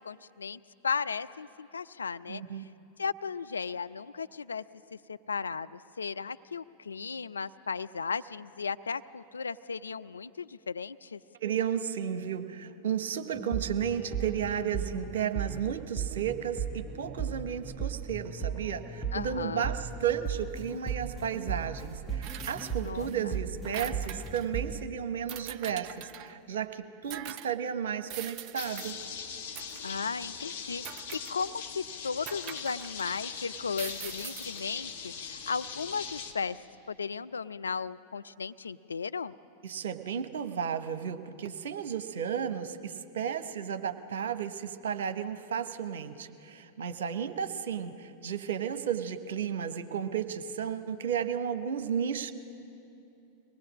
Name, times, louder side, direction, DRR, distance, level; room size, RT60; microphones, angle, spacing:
voice 1, 0.0-2.7 3.0-4.6 4.9-11.2 19.1-19.7 22.8-23.3 29.8-30.8 31.1-36.6 36.9-39.3, left 5 dB, 75° left, 12 dB, 0.4 m, -36 dB
voice 2, 2.3-2.6 11.4-28.9 39.6-52.3, right 8 dB, 60° right, 10 dB, 0.9 m, -33 dB
sound 1, 13.3-24.8, right 6 dB, 5° right, 1.4 m, -37 dB
sound 2, 22.2-23.2 23.5-24.5 25.3-26.4 27.1-27.6 28.1-28.9 29.5-30.0 30.8-31.6 32.3-33.2 33.7-34.6, right 11 dB, 40° right, 0.5 m, -43 dB
sound 3, 28.6-36.3, left 6 dB, 55° left, 1.6 m, -41 dB
24.0 x 19.0 x 6.1 m, 2.8 s
figure-of-eight pair, 90°, 0 cm